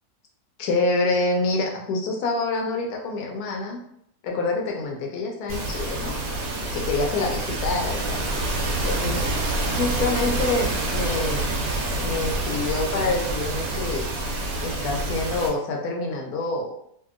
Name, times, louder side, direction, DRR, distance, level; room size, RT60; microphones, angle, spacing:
voice 1, 0.6-3.8 4.2-6.1 6.7-8.2 8.8-9.3 9.8-11.5 12.0-14.1 14.6-16.7, left 3 dB, 75° left, 0 dB, 1.1 m, -26 dB
sound 1, 5.5-15.5, right 2 dB, 70° right, 1.0 m, -27 dB
2.7 x 2.6 x 2.4 m, 0.72 s
omnidirectional pair, 1.7 m